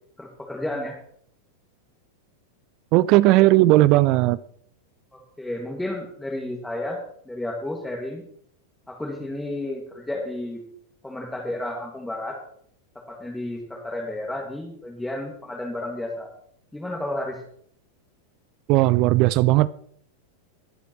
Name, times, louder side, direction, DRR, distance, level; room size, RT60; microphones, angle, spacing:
voice 1, 0.2-1.0 5.1-8.2 8.9-10.6 11.0-12.4 13.1-16.3 16.7-17.4, left 1 dB, 5° left, 0 dB, 1.9 m, -32 dB
voice 2, 2.9-4.4 18.7-19.7, right 17 dB, 40° right, 19 dB, 0.3 m, -17 dB
20.5 x 8.3 x 3.0 m, 0.65 s
figure-of-eight pair, 90°, 0 cm